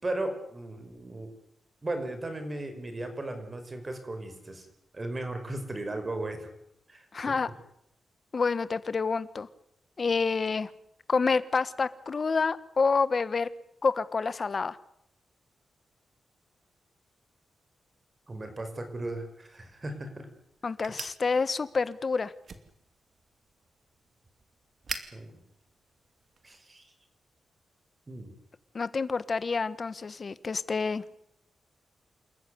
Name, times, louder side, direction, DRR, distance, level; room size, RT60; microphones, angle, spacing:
voice 1, 0.0-1.3 1.8-4.7 4.9-6.5 6.9-7.4 18.3-20.3 25.1-25.3 26.4-26.9 28.1-28.3, right 2 dB, 25° right, 7 dB, 5.2 m, -36 dB
voice 2, 7.1-7.5 8.3-9.5 10.0-10.7 11.1-13.5 13.8-14.8 20.6-22.3 28.7-31.0, left 4 dB, 35° left, 15 dB, 1.2 m, -28 dB
sound 1, 19.5-26.6, right 5 dB, 45° right, 2.6 m, -46 dB
29.0 x 14.0 x 9.7 m, 0.76 s
wide cardioid pair, 130°, 0 cm